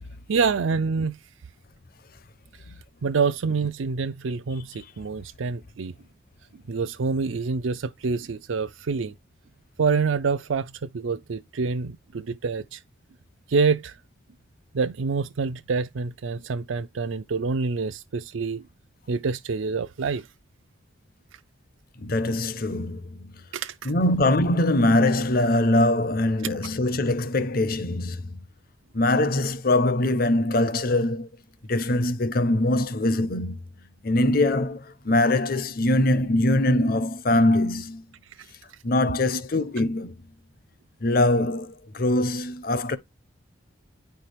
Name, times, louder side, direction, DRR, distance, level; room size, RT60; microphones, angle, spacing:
voice 1, 0.3-1.2 3.0-5.9 6.5-9.1 9.8-12.8 13.5-14.0 14.7-18.6 19.1-20.3 23.5-23.9, right 5 dB, 80° right, 0.5 m, -26 dB
voice 2, 22.0-23.3 23.8-28.4 28.9-31.3 31.7-33.6 34.0-38.0 38.8-40.1 41.0-43.0, left 1 dB, 45° left, 0.7 m, -22 dB
9.6 x 4.5 x 3.3 m
head